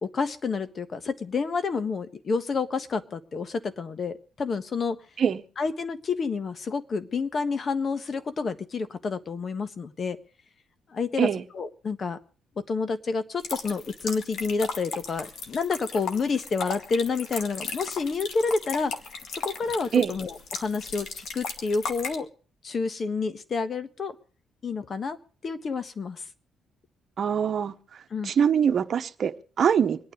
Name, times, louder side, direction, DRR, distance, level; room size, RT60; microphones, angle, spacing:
voice 1, 0.0-5.0 5.6-10.2 10.9-11.3 11.5-12.2 12.7-18.9 19.4-22.3 22.6-24.1 24.6-25.2 25.4-26.2 28.1-28.3, left 4 dB, 45° left, 1.4 m, -29 dB
sound 1, 13.4-22.2, left 4 dB, 65° left, 2.2 m, -36 dB
voice 2, 27.2-27.7 28.2-30.1, right 7 dB, 55° right, 1.1 m, -23 dB
25.0 x 9.4 x 5.0 m
cardioid pair, 90°, 0 cm